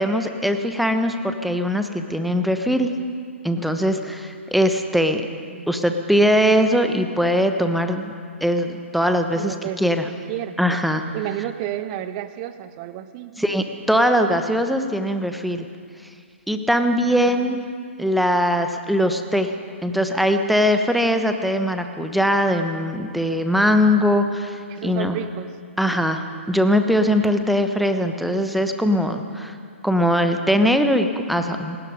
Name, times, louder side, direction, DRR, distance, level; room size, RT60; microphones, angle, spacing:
voice 1, 0.0-2.9 3.4-5.2 5.7-8.1 8.4-10.1 10.6-11.0 13.4-15.6 16.5-17.6 18.0-19.5 19.8-25.2 25.8-29.5 29.8-31.8, equal, ahead, 7 dB, 1.2 m, -21 dB
voice 2, 9.3-9.8 10.3-10.6 11.1-13.3 17.0-17.6 24.7-25.5, right 13 dB, 30° right, 12 dB, 1.2 m, -31 dB
28.0 x 19.0 x 5.2 m, 2.1 s
figure-of-eight pair, 120°, 7 cm